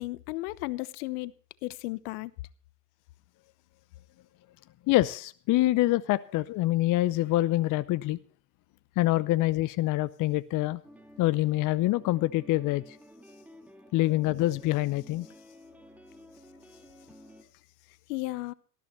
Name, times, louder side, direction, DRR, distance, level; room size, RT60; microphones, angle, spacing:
voice 1, 0.0-1.3 1.6-2.3 18.1-18.5, left 20 dB, 65° left, 1.0 m, -34 dB
voice 2, 4.9-8.2 9.0-10.8 11.2-13.0 13.9-15.3, left 17 dB, 40° left, 0.7 m, -25 dB
sound 1, 10.8-17.4, equal, 5° right, 2.7 m, -52 dB
19.0 x 14.0 x 3.2 m
hypercardioid pair, 80°, 49 cm